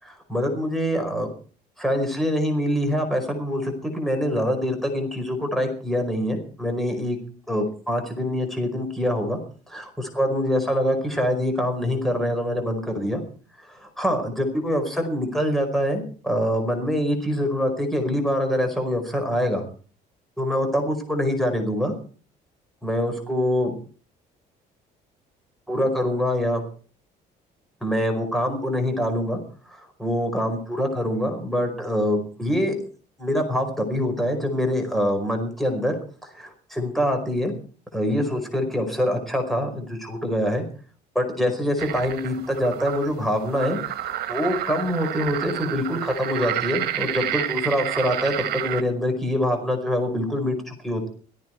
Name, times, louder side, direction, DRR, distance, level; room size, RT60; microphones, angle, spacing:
voice 1, 0.0-1.3 1.8-7.2 7.5-9.4 9.7-13.2 13.7-19.6 20.4-21.9 22.8-23.7 25.7-26.6 27.8-29.4 29.7-32.8 33.2-35.9 36.2-37.5 37.9-40.6 41.1-51.1, equal, ahead, 4 dB, 5.0 m, -25 dB
sound 1, 41.8-48.8, right 12 dB, 65° right, 1.8 m, -30 dB
18.0 x 14.5 x 4.6 m, 0.41 s
cardioid pair, 110°, 17 cm